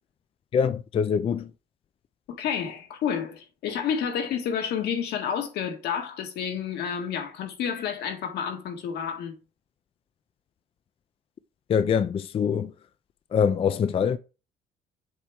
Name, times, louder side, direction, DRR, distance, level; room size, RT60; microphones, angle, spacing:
voice 1, 0.5-1.5 11.7-12.7 13.3-14.2, left 7 dB, 35° left, 0.4 m, -24 dB
voice 2, 2.3-9.3, left 7 dB, 75° left, 1.8 m, -30 dB
7.3 x 3.5 x 4.7 m
cardioid pair, 110°, 17 cm